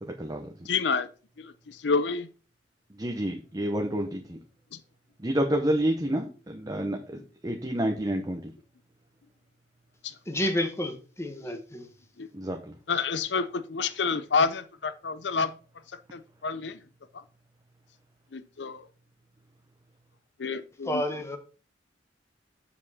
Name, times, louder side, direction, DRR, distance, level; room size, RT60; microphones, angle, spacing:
voice 1, 0.0-0.5 3.0-4.4 5.2-8.5 12.3-12.6, right 1 dB, 20° right, 0.9 m, -29 dB
voice 2, 0.7-1.1 1.4-2.3 4.7-4.8 10.0-10.1 11.5-11.6 12.2-12.3 12.9-15.5 16.1-16.8 17.1-17.2 18.3-18.8 20.4-21.0, left 5 dB, 70° left, 0.6 m, -29 dB
voice 3, 10.3-11.9 20.9-21.4, left 1 dB, 15° left, 1.3 m, -30 dB
7.5 x 7.2 x 4.2 m
head